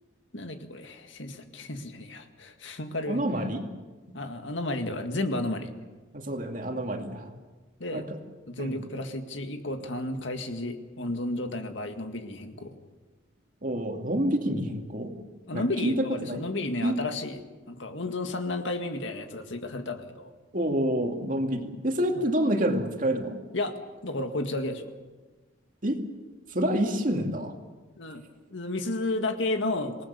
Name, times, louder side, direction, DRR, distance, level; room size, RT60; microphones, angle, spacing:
voice 1, 0.3-3.2 4.1-5.7 7.8-8.1 8.5-12.8 15.4-20.3 22.2-22.3 23.5-23.7 24.0-24.9 28.0-28.2 28.5-30.1, left 2 dB, 75° left, 6 dB, 2.0 m, -32 dB
voice 2, 3.1-3.7 4.1-4.2 6.1-7.3 7.9-8.0 8.6-8.8 13.6-15.1 15.5-16.4 16.8-17.0 20.5-23.4 25.8-26.0 26.5-27.5, right 1 dB, 45° right, 3 dB, 2.4 m, -28 dB
27.0 x 18.5 x 7.0 m, 1.3 s
head